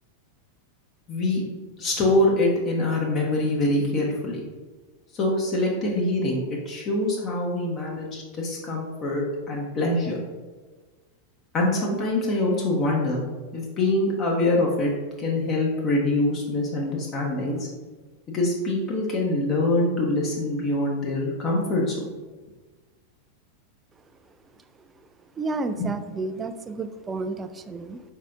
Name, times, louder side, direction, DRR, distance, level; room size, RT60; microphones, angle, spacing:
voice 1, 1.1-1.4 1.8-4.4 5.1-10.2 11.5-13.2 13.5-14.9 15.2-17.7 18.3-22.0 25.8-25.9, left 2 dB, 30° left, -2 dB, 0.8 m, -24 dB
voice 2, 25.4-28.0, right 3 dB, 20° right, 9 dB, 0.3 m, -31 dB
4.6 x 4.0 x 2.5 m, 1.3 s
figure-of-eight pair, 90°, 0 cm